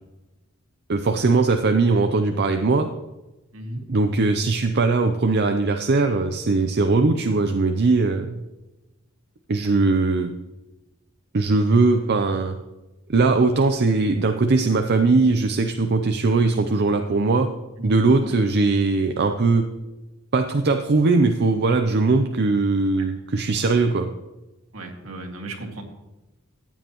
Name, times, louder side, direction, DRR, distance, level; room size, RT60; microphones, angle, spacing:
voice 1, 0.9-2.9 3.9-8.4 9.5-10.4 11.3-12.6 13.1-17.5 17.8-19.7 20.3-24.1, right 3 dB, 50° right, 6 dB, 0.6 m, -20 dB
voice 2, 3.5-3.9 17.8-17.9 18.2-18.3 23.0-23.1 23.7-23.8 24.7-25.8, right 2 dB, 70° right, 2 dB, 2.1 m, -35 dB
14.5 x 8.8 x 3.0 m, 1.1 s
head